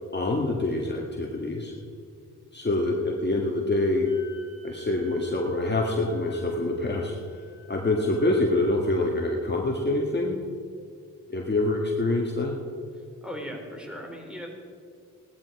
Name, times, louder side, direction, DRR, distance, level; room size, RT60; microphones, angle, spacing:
voice 1, 0.1-1.7 2.5-4.1 4.6-7.2 7.7-10.4 11.3-12.6, left 2 dB, 30° left, 0 dB, 1.9 m, -26 dB
Wind instrument woodwind instrument, 4.0-8.7, left 2 dB, 50° right, 4.0 m, -52 dB
voice 2, 12.9-14.5, equal, 5° right, 1 dB, 4.2 m, -38 dB
17.5 x 12.0 x 4.8 m, 2.3 s
supercardioid pair, 50°, 34 cm